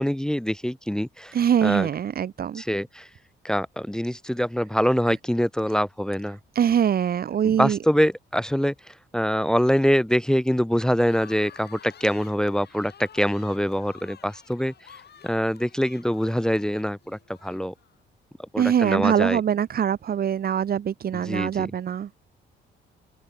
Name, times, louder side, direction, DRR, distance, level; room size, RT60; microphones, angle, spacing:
voice 1, 0.0-1.3 1.6-1.9 2.5-3.1 3.4-6.4 7.4-14.9 15.2-17.7 18.5-19.4 21.1-21.7, equal, 5° left, 0.9 m, -24 dB
voice 2, 1.3-2.6 6.6-7.8 18.6-22.1, right 9 dB, 50° right, 0.9 m, -23 dB
sound 1, 11.0-18.0, left 8 dB, 55° left, 7.6 m, -50 dB
open air
cardioid pair, 90°, 20 cm